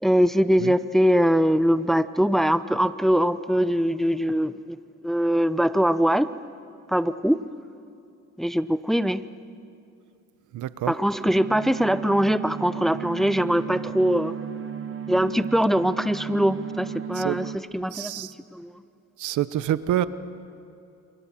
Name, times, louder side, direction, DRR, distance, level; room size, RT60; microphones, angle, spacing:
voice 1, 0.0-4.8 5.0-6.3 6.9-7.4 8.4-9.2 10.9-14.3 15.1-18.8, equal, ahead, 13 dB, 0.8 m, -22 dB
voice 2, 10.5-10.9 17.2-17.4 17.9-18.3 19.2-20.1, right 12 dB, 80° right, 14 dB, 1.0 m, -26 dB
sound 1, 11.2-17.6, right 8 dB, 45° right, 1.6 m, -34 dB
28.5 x 25.5 x 7.5 m, 2.5 s
cardioid pair, 90°, 30 cm